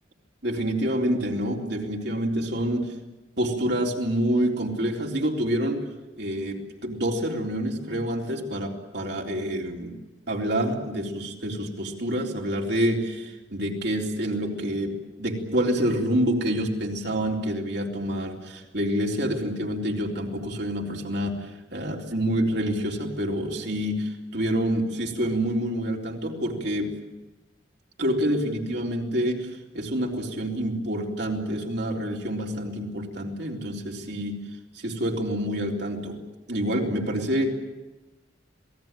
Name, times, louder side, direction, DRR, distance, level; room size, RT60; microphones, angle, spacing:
voice 1, 0.4-2.9 3.4-5.8 6.2-9.9 10.3-26.9 28.0-34.4 34.7-36.2 36.5-37.5, equal, 60° right, 0 dB, 4.0 m, -27 dB
27.0 x 19.0 x 9.2 m, 1.1 s
head